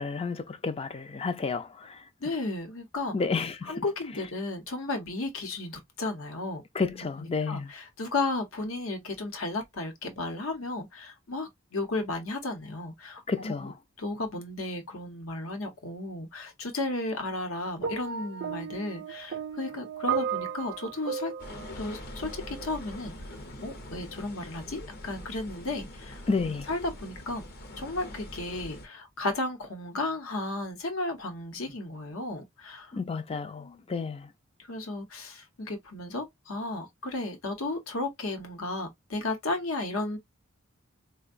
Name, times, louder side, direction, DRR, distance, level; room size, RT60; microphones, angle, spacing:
voice 1, 0.0-2.0 3.1-3.8 6.7-7.7 13.3-13.7 26.3-26.7 32.9-34.3, left 4 dB, 30° left, 0.4 m, -31 dB
voice 2, 2.2-3.2 3.7-6.6 7.2-13.7 14.0-21.3 21.7-23.1 23.6-26.3 26.7-27.4 27.8-33.0 33.6-33.8 34.6-40.2, left 2 dB, 85° left, 0.9 m, -34 dB
sound 1, 17.8-22.9 23.8-24.0, right 7 dB, 55° right, 0.4 m, -35 dB
sound 2, 21.4-28.9, left 1 dB, 50° left, 0.8 m, -43 dB
4.4 x 2.2 x 2.4 m
head